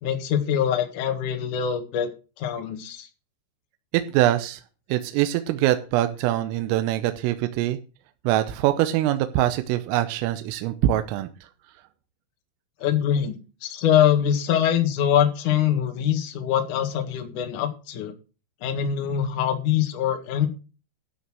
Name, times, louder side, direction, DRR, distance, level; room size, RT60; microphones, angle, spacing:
voice 1, 0.0-2.1 2.4-3.1 12.8-18.1 18.6-20.5, left 9 dB, 55° left, 4 dB, 2.5 m, -23 dB
voice 2, 3.9-4.6 4.9-7.8 8.2-11.3, right 13 dB, 80° right, 9 dB, 3.4 m, -23 dB
12.5 x 7.1 x 6.2 m, 0.34 s
omnidirectional pair, 5.9 m